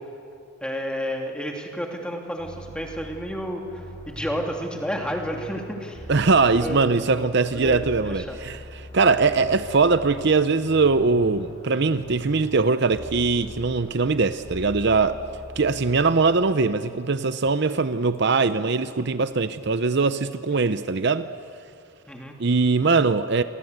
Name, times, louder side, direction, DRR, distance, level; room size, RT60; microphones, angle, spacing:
voice 1, 0.6-6.1 6.5-7.3 7.5-8.4 20.5-20.7 22.1-22.3, equal, 5° left, 2.7 m, -31 dB
sound 1, 2.4-16.5, equal, 30° left, 6.5 m, -41 dB
voice 2, 6.1-15.2 15.6-21.3 22.4-23.4, right 4 dB, 55° right, 0.7 m, -21 dB
29.0 x 24.0 x 8.1 m
head